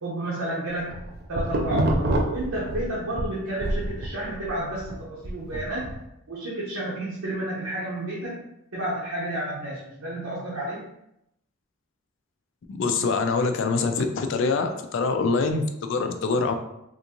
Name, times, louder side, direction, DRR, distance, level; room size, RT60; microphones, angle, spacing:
voice 1, 0.0-0.9 1.3-5.9 6.3-8.4 8.7-10.8, right 1 dB, 75° right, -6 dB, 0.7 m, -31 dB
sound 1, 0.7-3.3 3.6-6.0, right 1 dB, 45° right, 0.4 m, -27 dB
voice 2, 12.7-16.5, left 4 dB, 60° left, 7 dB, 0.3 m, -24 dB
3.5 x 2.5 x 2.8 m, 0.81 s
head